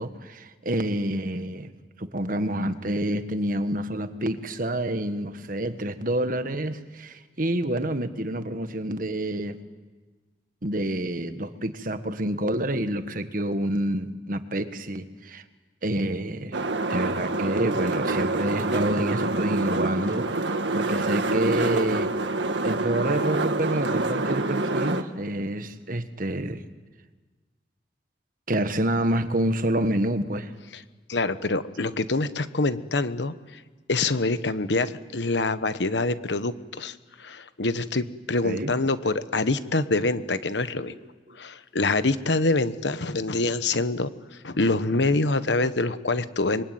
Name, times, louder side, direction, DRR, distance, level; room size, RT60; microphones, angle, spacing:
voice 1, 0.0-9.6 10.6-15.4 15.8-16.6 16.9-22.1 22.6-26.6 28.5-30.5 38.4-38.7 40.8-40.9, right 1 dB, 50° right, 10 dB, 1.5 m, -28 dB
sound 1, 16.5-25.0, right 2 dB, 85° right, 1.7 m, -26 dB
voice 2, 31.1-33.6 33.9-40.9 41.4-44.1 44.4-46.6, left 3 dB, 75° left, 12 dB, 1.2 m, -25 dB
26.5 x 23.0 x 9.3 m, 1.3 s
head